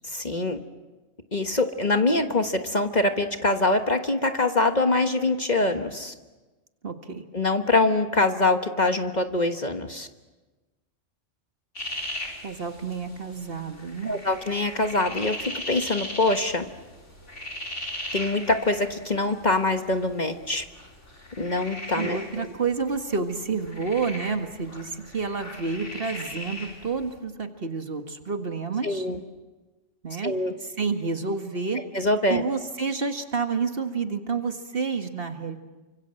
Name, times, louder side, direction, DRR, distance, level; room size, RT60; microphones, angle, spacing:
voice 1, 0.0-0.6 1.3-6.1 7.3-10.1 14.1-16.6 18.1-20.6 21.4-22.5 28.8-29.2 30.2-30.5 31.9-32.4, left 2 dB, 35° left, 6 dB, 1.4 m, -24 dB
voice 2, 6.8-7.2 12.4-14.2 21.9-29.1 30.0-31.8 32.3-35.6, right 4 dB, 50° right, 6 dB, 2.0 m, -29 dB
sound 1, 11.8-27.2, left 1 dB, 65° left, 5.0 m, -38 dB
30.0 x 25.5 x 7.7 m, 1.2 s
omnidirectional pair, 1.3 m